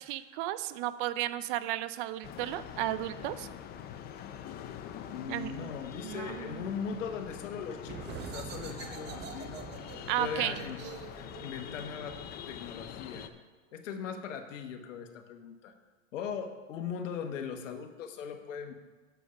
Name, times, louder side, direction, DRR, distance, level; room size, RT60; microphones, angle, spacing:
voice 1, 0.1-3.5 5.3-5.7 6.0-6.6 10.1-10.6, right 14 dB, 45° right, 14 dB, 0.5 m, -34 dB
sound 1, 2.2-13.3, left 9 dB, 25° left, 0.5 m, -44 dB
voice 2, 5.1-9.7 10.2-10.8 11.2-13.3 13.7-15.7 16.1-18.7, left 6 dB, 75° left, 7 dB, 1.2 m, -39 dB
sound 2, 7.8-13.2, right 6 dB, 25° right, 0.8 m, -45 dB
8.2 x 6.8 x 5.1 m, 1.3 s
hypercardioid pair, 125°, 38 cm